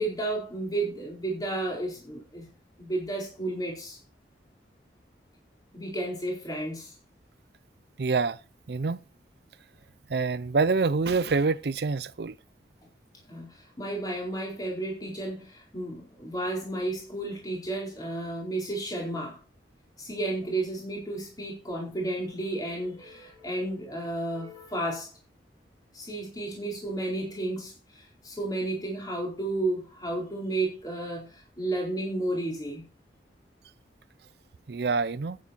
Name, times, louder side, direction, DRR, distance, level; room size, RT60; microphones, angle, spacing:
voice 1, 0.0-2.4 2.8-4.0 5.7-6.9 13.3-19.4 20.0-25.1 25.9-32.8, right 2 dB, 20° left, 4.5 m, -32 dB
voice 2, 8.0-8.4 8.7-9.0 10.1-12.3 34.7-35.4, right 4 dB, 65° right, 0.5 m, -26 dB
10.5 x 9.9 x 4.5 m
head